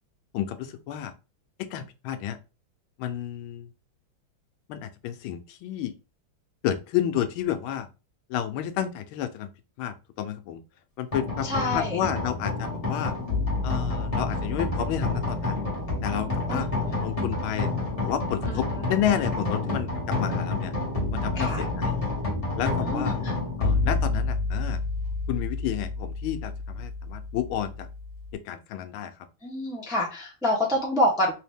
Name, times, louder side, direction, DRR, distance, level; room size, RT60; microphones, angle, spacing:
voice 1, 0.3-1.1 1.6-2.4 3.0-3.7 4.7-5.9 6.6-7.9 8.3-9.5 9.8-10.6 11.0-13.1 13.6-15.6 16.0-16.7 17.0-17.7 18.0-20.7 21.1-22.0 22.6-23.2 23.6-24.8 25.3-27.9 28.3-29.1, left 10 dB, 85° left, 10 dB, 1.4 m, -31 dB
sound 1, 11.1-28.3, left 3 dB, 20° left, 1.1 m, -29 dB
voice 2, 11.4-12.0 16.5-17.0 18.4-18.8 21.4-21.6 22.8-23.3 29.4-31.3, left 1 dB, 5° right, -2 dB, 0.4 m, -27 dB
3.9 x 2.8 x 3.4 m, 0.31 s
omnidirectional pair, 2.2 m